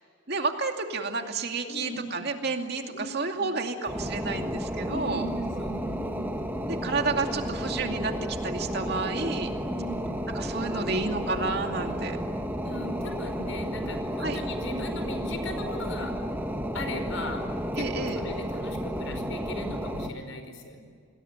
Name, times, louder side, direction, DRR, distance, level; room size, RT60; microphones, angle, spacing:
voice 1, 0.3-5.2 6.7-9.5 10.3-12.2 14.2-14.4 17.8-18.2, right 3 dB, 50° right, 4 dB, 2.5 m, -30 dB
voice 2, 1.6-2.1 2.9-3.1 4.9-6.3 7.1-7.2 9.6-10.1 10.7-11.2 12.6-16.2 16.7-17.5 17.7-20.8, left 1 dB, 75° left, 7 dB, 5.1 m, -38 dB
sound 1, 3.9-20.1, equal, 10° right, 1.6 m, -32 dB
28.5 x 20.5 x 9.0 m, 2.1 s
head